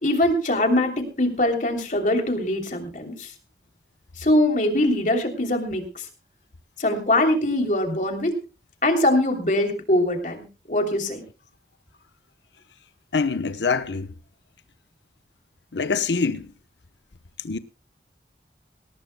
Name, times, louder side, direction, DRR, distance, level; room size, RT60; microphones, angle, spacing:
voice 1, 0.0-3.3 4.2-5.8 6.8-8.3 8.8-11.2, left 1 dB, 45° left, 3.1 m, -22 dB
voice 2, 13.1-14.1 15.7-16.5 17.4-17.6, left 4 dB, 90° left, 0.9 m, -24 dB
19.5 x 19.0 x 2.2 m
head